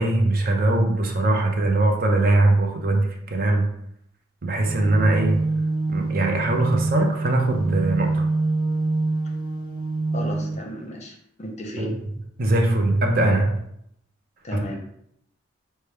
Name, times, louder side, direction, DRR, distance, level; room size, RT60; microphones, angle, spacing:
voice 1, 0.0-3.7 4.4-5.4 5.9-8.2 11.8-11.9 12.4-13.6, right 2 dB, 45° right, 2 dB, 0.6 m, -21 dB
sound 1, 4.6-10.6, right 2 dB, 20° right, 1.0 m, -25 dB
voice 2, 10.1-11.9 14.4-14.8, equal, 30° left, 1 dB, 0.6 m, -34 dB
5.6 x 2.3 x 3.3 m, 0.73 s
head